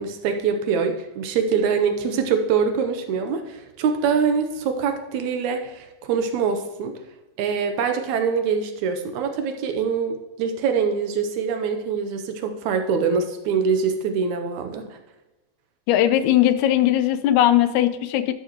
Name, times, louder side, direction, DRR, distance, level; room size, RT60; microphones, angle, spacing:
voice 1, 0.0-6.9 7.4-15.0, right 6 dB, 80° right, 6 dB, 2.1 m, -24 dB
voice 2, 15.9-18.3, left 12 dB, 85° left, 10 dB, 2.0 m, -19 dB
11.5 x 6.8 x 2.9 m, 1.1 s
omnidirectional pair, 3.3 m